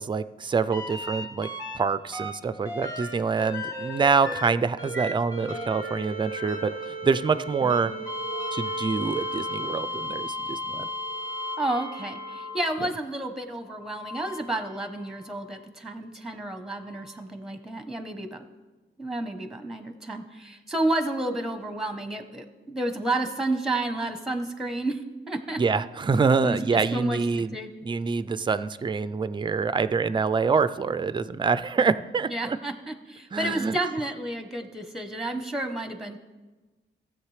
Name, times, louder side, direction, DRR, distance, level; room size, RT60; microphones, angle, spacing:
voice 1, 0.0-1.5 1.7-6.7 7.0-7.9 8.5-10.9 25.6-27.6 27.8-32.6 33.3-33.8, right 5 dB, 25° right, 14 dB, 0.4 m, -25 dB
sound 1, 0.7-1.8 2.1-12.9 13.7-15.3 17.0-17.1, equal, 20° left, 1.8 m, -35 dB
voice 2, 11.6-18.4 19.0-25.0 25.3-25.6 26.4-27.2 27.5-27.7 32.3-36.2, right 2 dB, ahead, 8 dB, 0.9 m, -31 dB
16.5 x 7.4 x 3.2 m, 1.2 s
cardioid pair, 95°, 20 cm